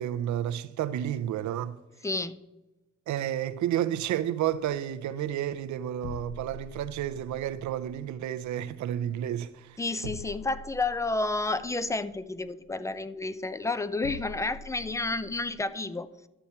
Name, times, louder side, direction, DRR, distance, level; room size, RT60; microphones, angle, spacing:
voice 1, 0.0-1.8 3.1-9.8, right 11 dB, 70° right, 0.6 m, -31 dB
voice 2, 2.0-2.4 9.8-16.1, left 3 dB, 10° left, 0.5 m, -30 dB
sound 1, 4.4-15.6, left 5 dB, 80° left, 0.6 m, -47 dB
12.0 x 7.1 x 4.4 m
cardioid pair, 90°, 30 cm